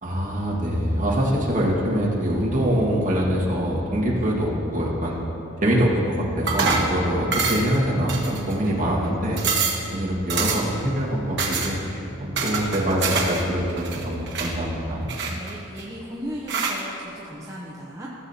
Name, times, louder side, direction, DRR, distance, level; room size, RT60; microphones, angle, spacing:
voice 1, 0.0-5.2 5.6-9.4 9.9-15.1, equal, 40° right, -4 dB, 1.6 m, -24 dB
sound 1, 6.5-6.9 7.3-7.8 8.1-8.7 9.0-9.1 9.4-9.8 10.3-10.8 11.4-11.7 12.4-13.4 13.7-14.5 15.1-15.8 16.5-16.8, right 4 dB, 55° right, 1.2 m, -25 dB
voice 2, 15.3-18.1, equal, 15° right, -5 dB, 0.7 m, -36 dB
16.0 x 7.4 x 2.8 m, 2.9 s
head